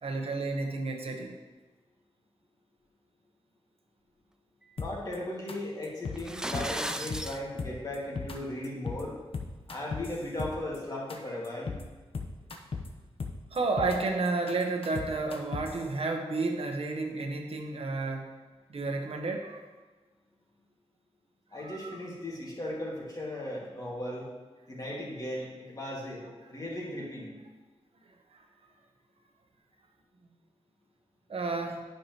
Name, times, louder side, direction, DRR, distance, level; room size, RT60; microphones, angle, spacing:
voice 1, 0.0-1.3 13.5-18.3 18.7-19.6 21.6-21.9 31.3-31.8, right 3 dB, 65° right, 3 dB, 0.9 m, -31 dB
sound 1, 4.8-5.2 5.5-5.6 5.8-6.2 6.5-7.3 7.6-8.4 8.6-9.0 9.3-10.8 11.1-11.2 11.4-11.8 12.1-12.9 13.2-14.0 14.3-15.8, left 4 dB, 60° left, 0.8 m, -36 dB
voice 2, 4.8-9.2 9.7-11.7 21.5-24.3 24.7-27.4, left 1 dB, 35° left, -4 dB, 1.9 m, -37 dB
sound 2, 6.1-7.4, right 1 dB, 5° right, 0.3 m, -35 dB
9.6 x 5.8 x 2.9 m, 1.3 s
wide cardioid pair, 90°, 11 cm